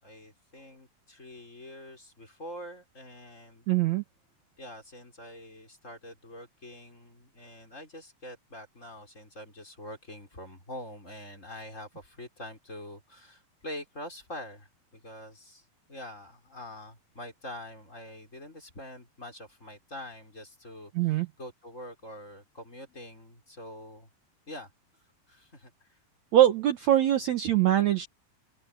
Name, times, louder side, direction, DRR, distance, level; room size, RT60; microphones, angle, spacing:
voice 1, 0.0-3.7 4.6-24.1 24.5-24.7 25.3-26.0, left 1 dB, 20° left, 5.5 m, -45 dB
voice 2, 3.7-4.0 21.0-21.3 26.3-28.1, right 12 dB, 65° right, 2.1 m, -23 dB
open air
omnidirectional pair, 4.2 m